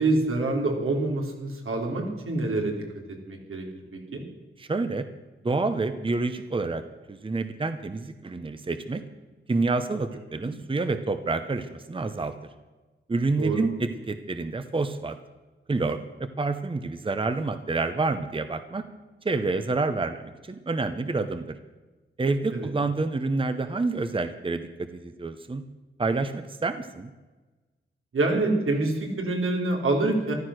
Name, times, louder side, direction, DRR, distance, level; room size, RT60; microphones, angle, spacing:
voice 1, 0.0-2.7 3.3-3.6 4.1-4.2 10.3-10.4 13.4-13.6 22.5-22.7 28.1-30.3, right 2 dB, 85° right, 1 dB, 3.3 m, -26 dB
voice 2, 4.6-5.1 5.4-6.8 7.1-9.0 9.5-12.3 13.1-15.2 15.7-18.8 19.2-21.5 22.2-25.6 26.0-27.1, right 3 dB, 25° right, 10 dB, 0.8 m, -28 dB
14.5 x 12.5 x 6.3 m, 1.2 s
wide cardioid pair, 135°, 21 cm